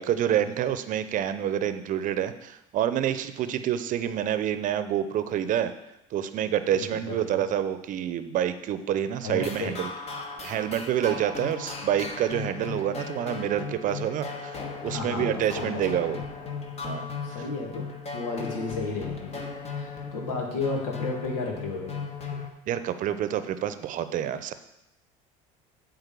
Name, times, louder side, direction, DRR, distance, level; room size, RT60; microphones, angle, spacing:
voice 1, 0.0-5.7 6.1-9.9 10.4-14.6 14.8-16.2 16.8-17.0 22.7-24.5, right 10 dB, 50° right, 12 dB, 0.7 m, -27 dB
voice 2, 6.7-7.4 9.2-9.7 14.8-16.2 17.2-17.9 18.1-19.4 19.7-22.0, left 3 dB, 90° left, 0 dB, 2.0 m, -33 dB
sound 1, 9.3-22.5, left 4 dB, 40° left, 1.3 m, -36 dB
8.1 x 4.0 x 6.9 m, 0.86 s
supercardioid pair, 85°, 17 cm